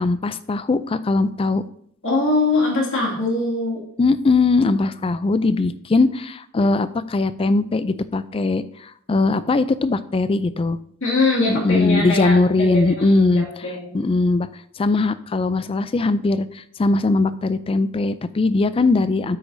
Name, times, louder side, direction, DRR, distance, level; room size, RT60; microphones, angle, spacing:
voice 1, 0.0-1.6 4.0-8.6 9.1-10.8 11.5-13.5 13.9-14.5 14.8-16.5 16.8-19.4, left 3 dB, 25° left, 14 dB, 0.3 m, -20 dB
voice 2, 2.0-3.8 11.0-14.0, left 2 dB, 60° left, -3 dB, 2.3 m, -22 dB
9.6 x 8.0 x 2.7 m, 0.68 s
head